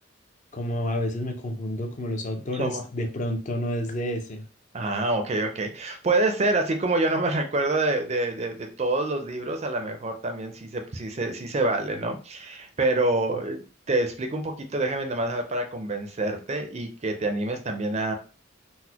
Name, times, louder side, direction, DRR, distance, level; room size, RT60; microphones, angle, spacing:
voice 1, 0.5-4.4 13.3-13.4, left 1 dB, 35° left, 4 dB, 0.5 m, -30 dB
voice 2, 2.4-2.8 4.7-13.6 13.9-18.1, right 2 dB, 30° right, 5 dB, 0.4 m, -27 dB
3.9 x 2.1 x 2.8 m, 0.36 s
head